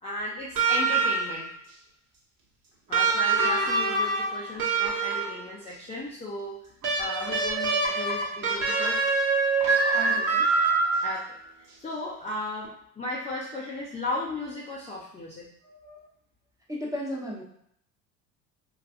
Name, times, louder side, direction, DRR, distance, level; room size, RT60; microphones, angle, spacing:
voice 1, 0.0-1.5 2.9-6.6 7.0-9.0 11.0-11.3 11.8-16.1, left 1 dB, 15° left, -5 dB, 0.6 m, -35 dB
sound 1, 0.5-1.5 2.9-5.5 6.8-11.3 12.6-12.7, right 3 dB, 45° right, 1.1 m, -25 dB
voice 2, 9.9-10.5 16.7-17.4, left 1 dB, 10° right, -4 dB, 1.0 m, -34 dB
3.3 x 2.3 x 2.5 m, 0.69 s
hypercardioid pair, 80°, 44 cm